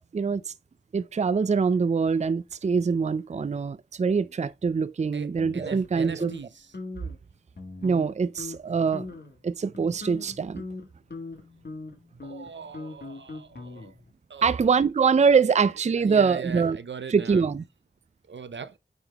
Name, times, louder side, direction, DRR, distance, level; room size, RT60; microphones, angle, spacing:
voice 1, 0.1-0.5 0.9-6.3 7.8-9.1 9.4-10.6 14.4-16.8 17.1-17.6, right 5 dB, 40° right, 0.4 m, -24 dB
voice 2, 5.1-6.8 12.2-13.9 14.3-14.7 15.2-17.5 18.3-18.8, right 6 dB, 80° right, 0.6 m, -40 dB
sound 1, 5.4-6.4 6.7-7.2 7.6-8.1 8.4-8.6 8.9-9.4 9.7-14.1, left 3 dB, 60° left, 1.8 m, -40 dB
8.8 x 3.7 x 3.4 m
wide cardioid pair, 55°, 19 cm